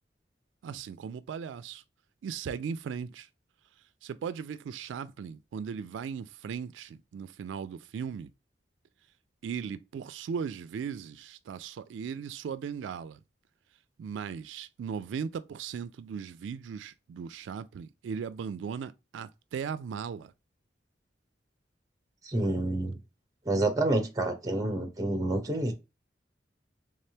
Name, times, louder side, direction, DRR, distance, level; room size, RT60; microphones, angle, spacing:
voice 1, 0.6-1.8 2.2-3.3 4.0-8.3 9.4-13.2 14.0-20.3, right 6 dB, 90° right, 0.3 m, -37 dB
voice 2, 22.2-23.0 23.5-25.7, right 2 dB, 20° right, 0.8 m, -28 dB
3.5 x 3.3 x 2.8 m
head